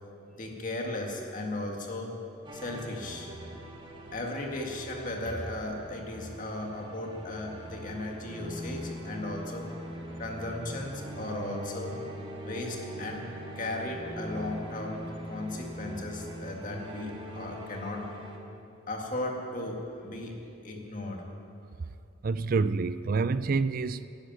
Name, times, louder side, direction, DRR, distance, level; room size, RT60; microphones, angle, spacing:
voice 1, 0.4-2.2 2.5-3.5 4.1-12.0 12.4-13.3 13.6-18.1 18.9-21.2, left 2 dB, 40° left, 1 dB, 2.0 m, -36 dB
sound 1, 2.4-18.4, equal, 25° right, 1.5 m, -42 dB
voice 2, 22.2-24.1, right 4 dB, 45° right, 14 dB, 0.4 m, -27 dB
11.5 x 11.5 x 9.5 m, 2.7 s
head